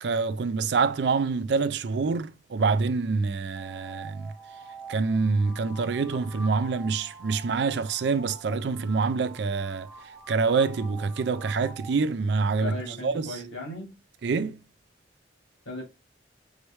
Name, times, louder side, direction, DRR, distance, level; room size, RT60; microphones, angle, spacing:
voice 1, 0.0-4.3 4.9-9.9 10.3-12.7 13.0-13.4 14.2-14.6, right 4 dB, 65° right, 0.4 m, -26 dB
sound 1, 3.5-12.0, right 3 dB, 15° right, 0.8 m, -46 dB
voice 2, 12.6-14.0 15.7-15.8, left 2 dB, 90° left, 2.1 m, -36 dB
4.7 x 3.2 x 3.0 m
head